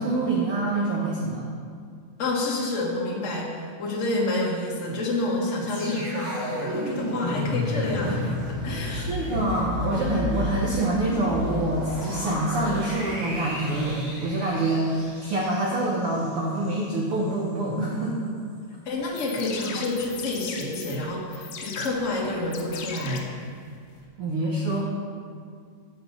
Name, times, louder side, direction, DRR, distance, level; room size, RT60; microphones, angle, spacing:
voice 1, 0.0-1.4 8.9-18.3 24.2-24.8, right 2 dB, 70° right, -4 dB, 1.3 m, -26 dB
voice 2, 2.2-8.4 8.6-9.1 18.8-23.3, left 2 dB, 55° left, -3 dB, 0.8 m, -28 dB
sound 1, 5.7-16.9 17.2-17.4, left 1 dB, 20° right, 2.5 m, -32 dB
sound 2, 19.0-24.0, left 6 dB, 85° left, 2.4 m, -39 dB
7.8 x 7.0 x 5.3 m, 2.2 s
omnidirectional pair, 3.8 m